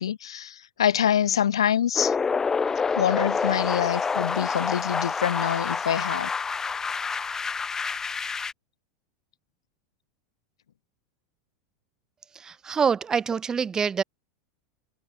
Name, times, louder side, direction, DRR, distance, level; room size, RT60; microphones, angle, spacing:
voice 1, 0.0-2.1 2.9-6.3, left 9 dB, 75° left, 4.1 m, -25 dB
sound 1, 2.0-8.5, left 5 dB, 20° left, 2.6 m, -27 dB
voice 2, 12.3-14.0, right 6 dB, 25° right, 2.9 m, -25 dB
hypercardioid pair, 85°, 3 cm